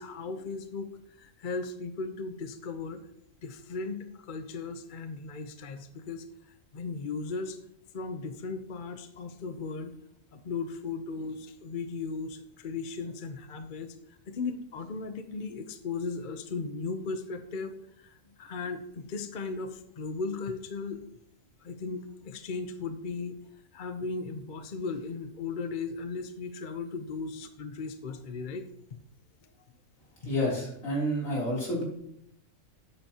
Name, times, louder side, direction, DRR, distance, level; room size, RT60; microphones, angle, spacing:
voice 1, 0.0-3.0 3.4-7.6 7.9-9.9 10.3-14.0 14.3-21.0 21.6-23.4 23.7-28.7, left 4 dB, 45° left, 8 dB, 0.8 m, -37 dB
voice 2, 30.2-31.8, equal, 75° left, -5 dB, 3.8 m, -29 dB
12.0 x 8.7 x 2.9 m, 0.73 s
omnidirectional pair, 1.4 m